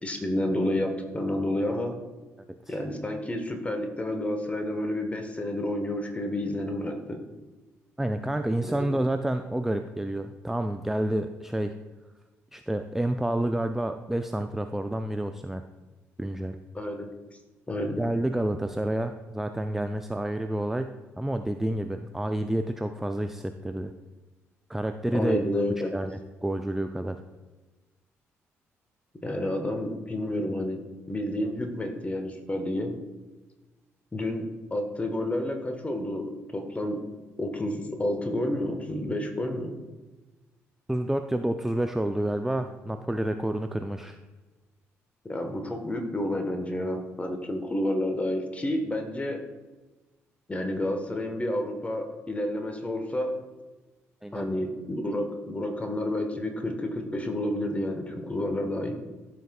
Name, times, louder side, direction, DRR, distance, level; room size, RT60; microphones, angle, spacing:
voice 1, 0.0-2.0 2.7-7.2 8.6-8.7 16.7-17.1 17.7-18.0 25.1-25.9 29.2-30.8 31.1-32.9 34.1-34.4 34.7-37.0 37.4-39.7 45.3-49.4 50.5-53.3 54.3-59.0, left 1 dB, 20° left, 5 dB, 1.3 m, -30 dB
voice 2, 8.0-11.7 12.5-15.6 16.2-16.6 18.0-23.9 24.7-25.4 25.9-27.2 40.9-44.2 54.2-54.5, right 1 dB, 5° right, 7 dB, 0.4 m, -29 dB
13.5 x 5.8 x 2.3 m, 1.2 s
figure-of-eight pair, 40°, 7 cm